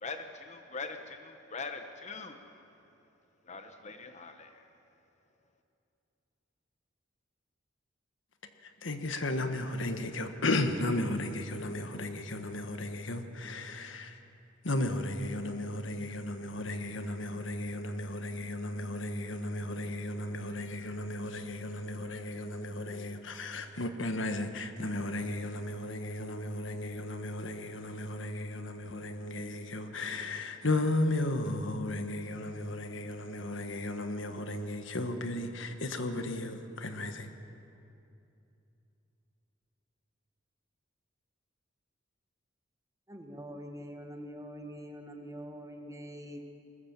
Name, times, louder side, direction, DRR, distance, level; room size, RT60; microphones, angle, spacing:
voice 1, 0.0-2.4 3.4-4.6, left 4 dB, 35° left, 1.0 m, -42 dB
voice 2, 8.6-14.2 14.6-37.3, left 2 dB, 70° left, 1.4 m, -34 dB
voice 3, 43.1-46.4, equal, 15° right, 1.7 m, -44 dB
21.0 x 19.5 x 7.4 m
head